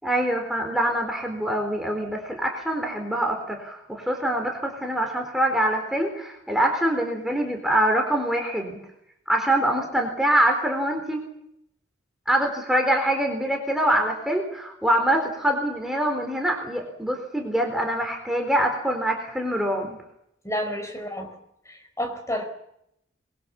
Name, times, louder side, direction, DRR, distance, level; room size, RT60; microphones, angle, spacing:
voice 1, 0.0-8.8 9.3-11.2 12.3-20.0, right 1 dB, ahead, 2 dB, 4.1 m, -24 dB
voice 2, 20.4-21.4 21.7-22.4, equal, 15° left, 5 dB, 4.6 m, -30 dB
26.0 x 22.0 x 7.2 m, 0.76 s
head